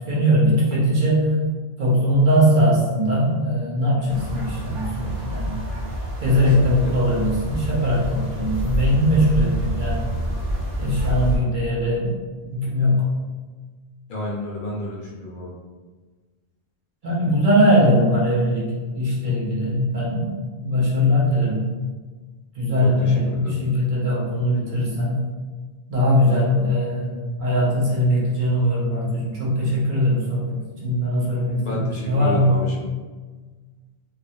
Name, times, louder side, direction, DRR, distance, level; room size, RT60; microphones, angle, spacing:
voice 1, 0.1-1.3 1.8-5.6 6.2-10.1 10.8-12.2 12.5-13.0 17.0-21.7 22.5-25.2 25.9-32.6, equal, 55° right, -6 dB, 0.8 m, -20 dB
sound 1, 4.1-11.4, equal, 85° right, 0.9 m, -27 dB
voice 2, 6.4-6.9 14.1-15.5 22.8-23.6 31.6-32.8, left 2 dB, 60° left, -4 dB, 0.6 m, -31 dB
2.5 x 2.0 x 2.6 m, 1.4 s
omnidirectional pair, 1.1 m